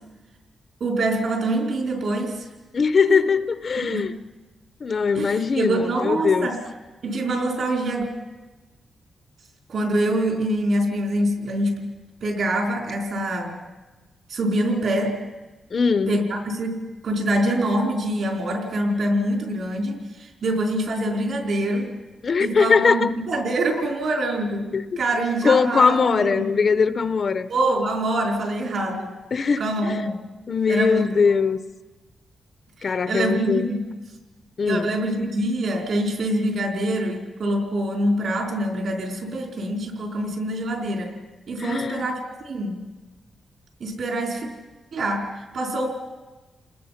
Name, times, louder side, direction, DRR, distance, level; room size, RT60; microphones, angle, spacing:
voice 1, 0.8-2.5 3.1-3.2 3.8-4.0 5.2-6.6 7.0-8.1 9.7-11.9 12.2-13.6 14.3-15.2 16.1-21.9 22.4-26.5 27.5-29.1 29.6-30.2 30.7-31.2 32.8-33.8 34.7-41.1 41.5-42.8 43.8-44.5 44.9-45.9, right 1 dB, 55° right, 2 dB, 4.4 m, -25 dB
voice 2, 2.7-4.1 4.8-6.5 15.7-16.2 22.2-23.1 24.7-24.8 25.4-27.5 29.3-30.1 30.5-31.6 32.8-33.7 34.6-34.9 41.6-42.1, left 5 dB, 40° left, 12 dB, 0.7 m, -21 dB
29.5 x 20.0 x 5.8 m, 1.2 s
wide cardioid pair, 170°, 0 cm